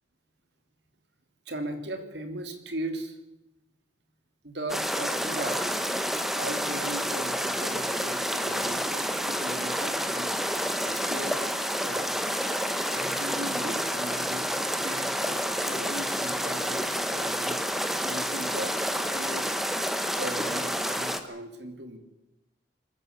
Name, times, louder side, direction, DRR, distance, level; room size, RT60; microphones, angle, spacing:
voice 1, 1.4-3.2 4.4-5.6 6.3-10.3 10.8-11.4 11.8-12.1 12.9-17.6 18.0-19.6 20.0-22.0, right 1 dB, 65° right, 7 dB, 3.3 m, -38 dB
sound 1, 4.7-21.2, equal, ahead, 1.4 m, -29 dB
24.5 x 14.5 x 8.3 m, 0.92 s
head